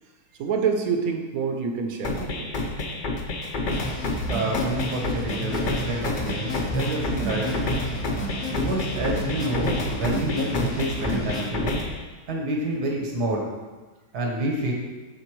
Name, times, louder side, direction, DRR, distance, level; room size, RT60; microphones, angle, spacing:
voice 1, 0.4-2.5, right 5 dB, 70° right, 4 dB, 1.1 m, -26 dB
sound 1, 2.0-12.0, left 2 dB, 60° left, 0.5 m, -29 dB
sound 2, 3.7-11.4, right 1 dB, 35° left, 0.9 m, -31 dB
voice 2, 4.3-7.5 8.5-11.8 12.3-13.5 14.1-14.7, right 1 dB, 85° right, -1 dB, 1.8 m, -28 dB
12.0 x 4.0 x 3.1 m, 1.3 s
omnidirectional pair, 1.7 m